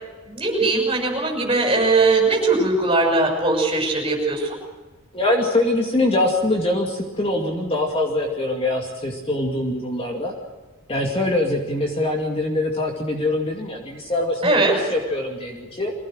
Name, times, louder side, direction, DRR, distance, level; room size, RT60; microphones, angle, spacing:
voice 1, 0.3-4.5 14.4-14.8, right 3 dB, 25° right, 0 dB, 6.3 m, -20 dB
voice 2, 5.1-10.3 10.9-15.9, left 2 dB, 25° left, 1 dB, 2.5 m, -23 dB
24.0 x 17.0 x 6.5 m, 1.3 s
head